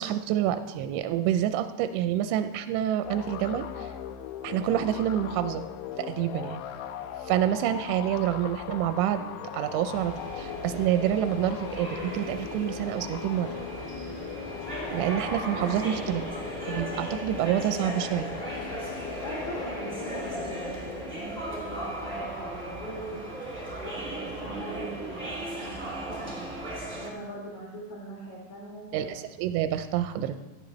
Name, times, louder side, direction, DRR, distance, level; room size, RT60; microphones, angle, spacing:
voice 1, 0.0-3.9 4.4-5.6 6.0-6.6 7.3-9.2 9.5-13.5 14.9-16.3 16.7-18.3 28.9-30.4, right 11 dB, 90° right, 9 dB, 2.8 m, -27 dB
sound 1, 3.0-21.5, left 9 dB, 85° left, 2.7 m, -40 dB
sound 2, 9.5-21.3, left 3 dB, 70° left, 7.0 m, -42 dB
sound 3, 9.9-27.1, right 1 dB, 5° right, 0.8 m, -37 dB
voice 2, 19.2-23.3 23.7-26.4 27.0-29.1, right 1 dB, 50° left, -6 dB, 3.3 m, -41 dB
16.5 x 9.9 x 3.1 m, 1.2 s
omnidirectional pair, 5.0 m